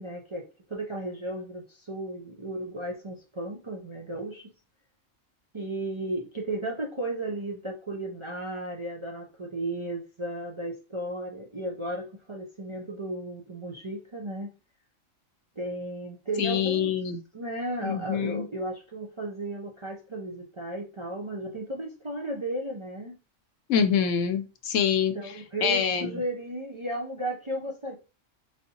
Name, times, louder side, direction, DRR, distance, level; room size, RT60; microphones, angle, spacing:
voice 1, 0.0-4.5 5.5-14.5 15.6-16.9 17.3-23.2 25.1-28.0, right 1 dB, 40° right, 0.4 m, -34 dB
voice 2, 16.4-17.2 17.8-18.5 23.7-25.1 25.6-26.1, left 7 dB, 75° left, 1.0 m, -25 dB
4.9 x 2.7 x 2.8 m
omnidirectional pair, 1.3 m